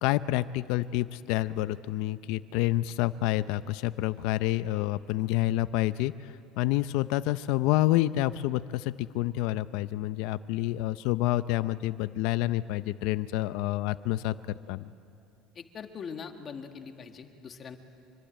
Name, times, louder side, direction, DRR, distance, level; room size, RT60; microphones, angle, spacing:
voice 1, 0.0-14.9, left 16 dB, 70° left, 14 dB, 0.5 m, -28 dB
voice 2, 15.5-17.8, left 6 dB, 30° left, 6 dB, 1.6 m, -42 dB
25.5 x 24.0 x 9.0 m, 2.6 s
cardioid pair, 155°, 0 cm